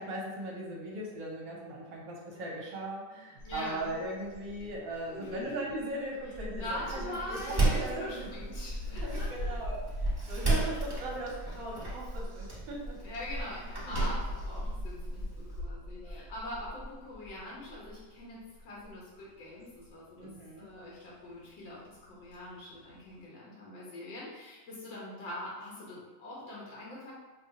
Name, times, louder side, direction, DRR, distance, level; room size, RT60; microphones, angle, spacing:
voice 1, 0.0-8.6 8.9-13.0 13.9-14.0 16.0-16.2 20.2-20.7, right 1 dB, 75° right, -3 dB, 1.4 m, -39 dB
voice 2, 3.4-3.9 5.0-5.7 6.6-9.6 10.6-10.7 13.0-20.3 20.6-27.1, left 1 dB, 75° left, -6 dB, 1.8 m, -43 dB
sound 1, 3.4-23.2, left 1 dB, 45° left, 1.6 m, -41 dB
Door, 6.6-15.6, right 3 dB, 20° right, 0.7 m, -35 dB
5.9 x 2.2 x 2.7 m, 1.3 s
omnidirectional pair, 2.1 m